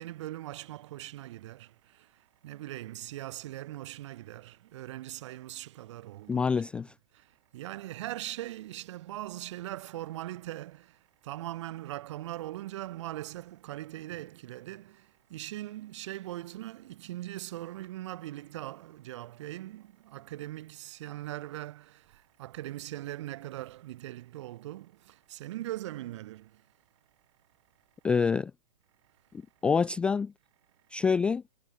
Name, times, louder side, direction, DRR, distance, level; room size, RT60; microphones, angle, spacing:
voice 1, 0.0-6.9 7.1-26.7, right 15 dB, 45° right, 4.4 m, -41 dB
voice 2, 6.3-6.9 28.0-28.5 29.6-30.3 30.9-31.4, left 5 dB, 5° left, 0.3 m, -26 dB
figure-of-eight pair, 115°, 21 cm